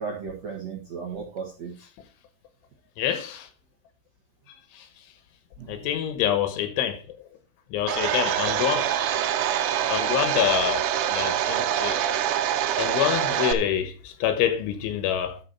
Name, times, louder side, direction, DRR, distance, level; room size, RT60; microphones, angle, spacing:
voice 1, 0.0-1.7 5.6-5.9, right 5 dB, 55° right, 2.0 m, -35 dB
voice 2, 3.0-3.5 4.8-4.9 5.7-7.0 7.7-8.9 9.9-10.9 11.1-12.0 12.8-15.4, left 10 dB, 80° left, 3.6 m, -26 dB
Domestic sounds home sounds, 7.9-13.5, right 10 dB, 85° right, 3.3 m, -25 dB
12.0 x 6.2 x 4.5 m
omnidirectional pair, 5.5 m